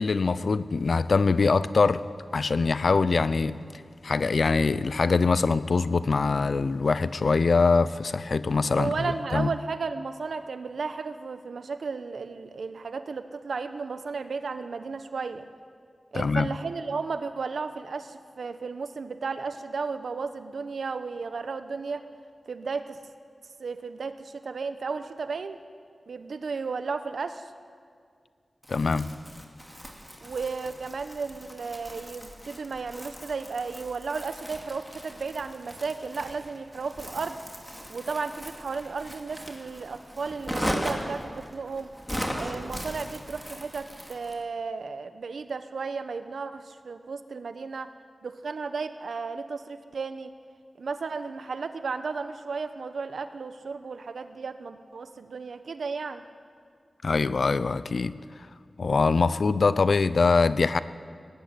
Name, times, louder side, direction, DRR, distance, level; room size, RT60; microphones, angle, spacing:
voice 1, 0.0-2.0 2.3-3.6 4.0-8.9 9.3-9.5 16.1-16.5 28.7-29.1 57.0-58.2 58.8-60.8, left 4 dB, 60° left, 0.6 m, -23 dB
voice 2, 8.8-15.5 16.1-22.0 22.5-23.0 23.6-25.6 26.1-27.5 30.2-37.4 37.9-41.9 42.3-47.9 48.2-50.3 50.8-56.2, right 4 dB, 80° right, 1.1 m, -34 dB
Crumpling crinkling, 28.6-44.4, equal, 5° left, 2.5 m, -38 dB
18.5 x 16.0 x 9.7 m
wide cardioid pair, 120°, 0 cm